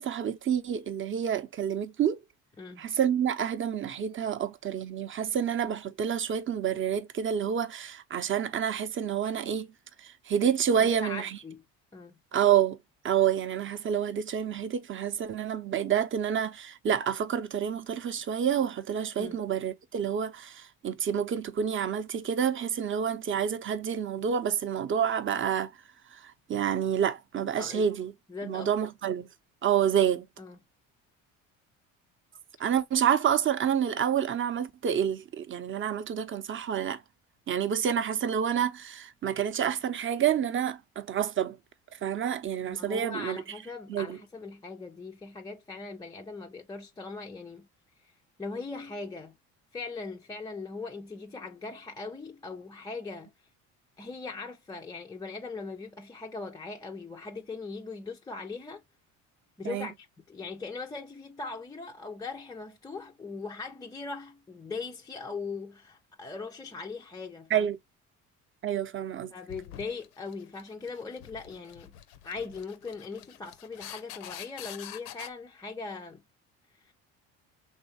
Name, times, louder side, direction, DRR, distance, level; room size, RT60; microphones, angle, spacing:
voice 1, 0.0-2.2 2.8-9.7 10.0-11.4 12.3-12.8 13.0-25.7 26.1-28.1 28.4-29.3 29.6-30.3 32.6-37.0 37.5-41.6 41.9-43.4 43.9-44.2 59.6-59.9 67.5-67.8 68.6-69.3, right 8 dB, 30° right, 0.6 m, -28 dB
voice 2, 10.8-11.6 11.9-12.2 19.2-19.4 27.6-27.9 28.3-28.7 30.4-30.6 42.7-47.7 48.0-48.1 48.4-49.4 49.7-53.3 54.0-58.8 59.6-67.7 69.3-72.0 72.2-76.2 76.7-76.9, left 4 dB, 10° left, 0.3 m, -40 dB
sound 1, 69.5-75.3, left 12 dB, 85° left, 0.6 m, -46 dB
4.0 x 3.2 x 2.8 m
hypercardioid pair, 70°, 40 cm